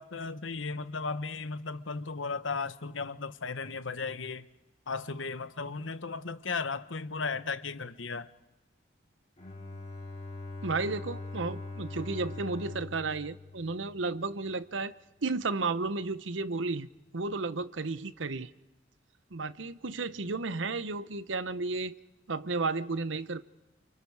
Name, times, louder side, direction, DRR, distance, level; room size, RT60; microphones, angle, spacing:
voice 1, 0.0-4.5 4.9-8.3, left 4 dB, 85° left, 1.1 m, -35 dB
Bowed string instrument, 9.4-14.3, left 2 dB, 35° left, 5.3 m, -42 dB
voice 2, 10.6-14.9 15.2-18.5 19.3-21.9 22.3-23.4, right 3 dB, 80° right, 0.9 m, -33 dB
29.5 x 29.0 x 4.8 m
head